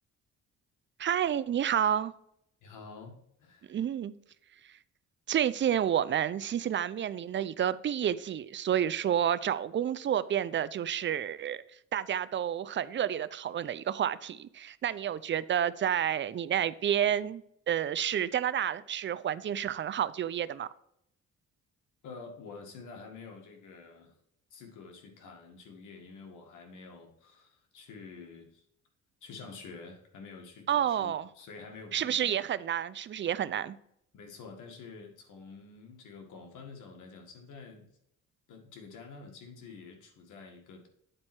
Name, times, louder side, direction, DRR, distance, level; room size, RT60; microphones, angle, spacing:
voice 1, 1.0-2.1 3.7-4.1 5.3-11.6 11.9-20.7 30.7-31.3 31.9-33.8, right 9 dB, 40° right, 16 dB, 0.4 m, -30 dB
voice 2, 2.6-3.8 22.0-24.2 24.5-28.6 29.2-32.4 34.1-37.9 38.5-40.9, left 4 dB, 85° left, 3 dB, 1.9 m, -48 dB
9.0 x 4.3 x 4.4 m, 0.74 s
cardioid pair, 90°, 30 cm